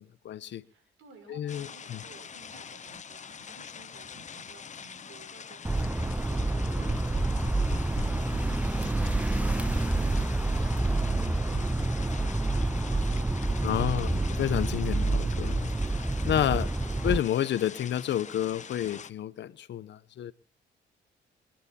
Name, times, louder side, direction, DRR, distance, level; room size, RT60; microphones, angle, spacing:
voice 1, 0.0-0.6 1.3-2.0 13.6-14.1 14.4-15.7 16.2-16.7 17.0-20.3, left 11 dB, 65° left, 0.9 m, -30 dB
voice 2, 0.6-8.9 9.3-12.1 12.7-14.3, right 4 dB, 85° right, 6.9 m, -54 dB
sound 1, 1.5-19.1, left 7 dB, 35° left, 0.8 m, -44 dB
sound 2, 5.6-17.2, right 2 dB, 5° right, 0.7 m, -28 dB
sound 3, 5.8-13.6, left 11 dB, 80° left, 1.5 m, -47 dB
28.5 x 10.5 x 4.3 m
cardioid pair, 90°, 20 cm